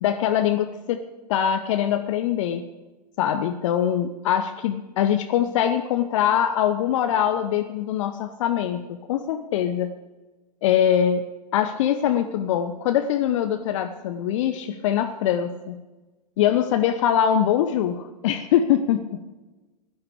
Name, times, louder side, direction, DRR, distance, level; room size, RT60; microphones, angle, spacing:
voice 1, 0.0-1.0 1.3-2.7 3.2-9.9 10.6-15.8 16.4-19.2, left 9 dB, 45° left, 8 dB, 0.9 m, -23 dB
16.0 x 11.5 x 5.0 m, 1.2 s
figure-of-eight pair, 95°, 21 cm